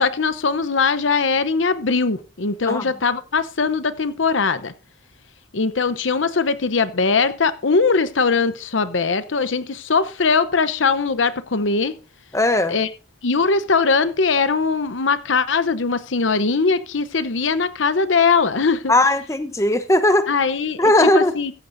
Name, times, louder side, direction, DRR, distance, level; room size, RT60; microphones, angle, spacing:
voice 1, 0.0-4.7 5.5-12.0 12.7-12.9 13.2-18.9 20.3-21.5, left 4 dB, 80° left, 0.8 m, -20 dB
voice 2, 12.3-12.7 18.9-20.3 20.8-21.3, left 1 dB, 15° left, 0.8 m, -17 dB
15.0 x 14.5 x 2.7 m
head